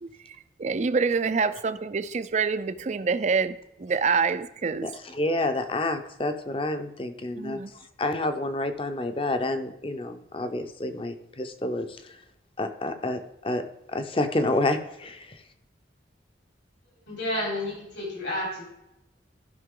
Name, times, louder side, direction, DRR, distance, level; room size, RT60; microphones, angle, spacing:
voice 1, 0.0-4.9 7.4-7.7, right 5 dB, 40° right, 0.4 m, -27 dB
voice 2, 4.8-7.6 8.0-12.2 12.6-15.4, left 2 dB, 30° left, 0.7 m, -29 dB
voice 3, 17.1-18.7, left 1 dB, 75° left, 3.9 m, -30 dB
14.5 x 5.8 x 3.8 m
head